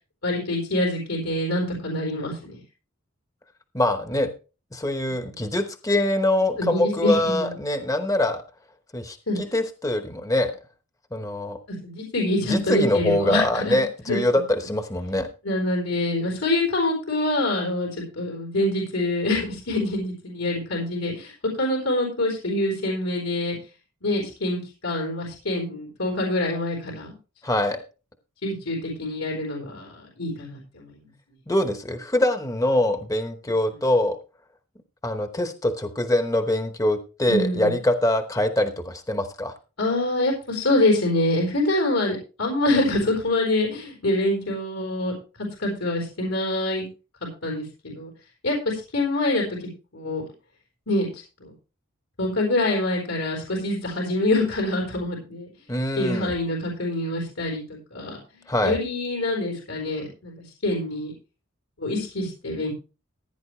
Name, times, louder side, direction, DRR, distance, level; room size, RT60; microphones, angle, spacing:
voice 1, 0.2-2.6 5.1-5.4 6.6-7.5 9.3-9.4 11.8-14.4 15.4-21.3 21.6-23.6 24.0-27.1 28.4-31.0 37.3-37.7 39.8-45.1 45.6-46.8 47.4-48.1 48.4-50.2 50.9-51.5 52.2-55.5 56.0-58.2 58.6-60.4 60.6-61.1 61.8-62.7, left 1 dB, 85° left, 0 dB, 4.0 m, -25 dB
voice 2, 3.7-4.3 4.7-8.4 8.9-10.5 11.1-11.6 12.5-15.3 27.4-27.8 31.5-34.2 35.0-39.5 55.7-56.3 58.5-58.8, left 1 dB, 15° left, 7 dB, 0.9 m, -24 dB
16.0 x 9.5 x 3.2 m, 0.32 s
head